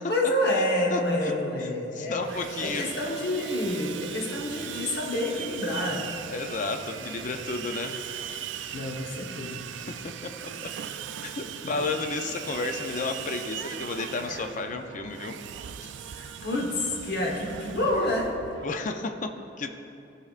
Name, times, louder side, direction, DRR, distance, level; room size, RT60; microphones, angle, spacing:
voice 1, 0.1-2.2 2.6-6.0 7.0-7.1 8.7-9.7 11.6-11.7 16.1-18.3, left 1 dB, 60° left, -1 dB, 1.1 m, -28 dB
voice 2, 0.9-2.9 6.3-8.0 9.7-10.3 10.6-10.7 11.2-15.4 15.8-15.9 18.6-19.3 19.6-19.7, left 3 dB, 45° left, 6 dB, 0.5 m, -32 dB
Sawing, 2.2-18.6, right 9 dB, 70° right, 0.3 m, -39 dB
15.0 x 5.7 x 2.4 m, 2.7 s
head